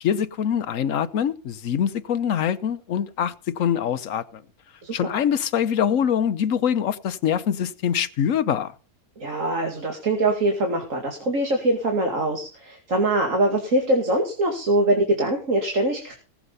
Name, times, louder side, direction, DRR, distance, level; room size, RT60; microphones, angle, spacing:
voice 1, 0.0-4.4 4.9-8.7, left 8 dB, 65° left, 1.2 m, -24 dB
voice 2, 9.2-16.1, right 2 dB, 60° right, 2.6 m, -23 dB
18.5 x 7.3 x 5.5 m
omnidirectional pair, 1.6 m